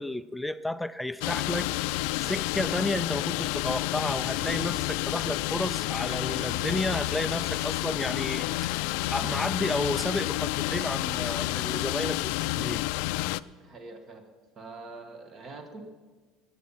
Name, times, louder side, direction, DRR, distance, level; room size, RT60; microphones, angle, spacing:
voice 1, 0.0-1.7 2.2-8.7 9.1-12.8, left 1 dB, 5° left, 13 dB, 0.4 m, -32 dB
sound 1, 1.2-13.4, left 18 dB, 75° left, 0.4 m, -30 dB
voice 2, 13.6-14.3 14.5-15.8, right 3 dB, 30° right, 5 dB, 1.6 m, -44 dB
19.0 x 8.6 x 5.7 m, 1.4 s
cardioid pair, 155°, 0 cm